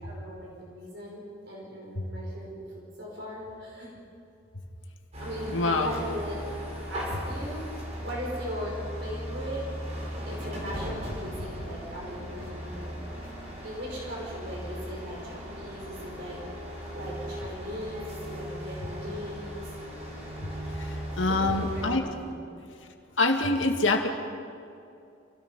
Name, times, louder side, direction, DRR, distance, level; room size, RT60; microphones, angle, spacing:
voice 1, 0.0-3.9 5.2-6.4 6.9-7.7 8.0-9.7 10.3-13.2 13.6-16.4 16.9-19.7 21.3-22.0 22.2-22.4, equal, 60° right, -3 dB, 5.4 m, -38 dB
sound 1, 5.1-22.0, equal, 35° right, 5.2 m, -37 dB
voice 2, 5.5-5.9 20.4-20.5 20.8-22.0 23.2-24.1, left 2 dB, 75° left, 3 dB, 2.2 m, -25 dB
28.0 x 17.5 x 5.7 m, 2.6 s
head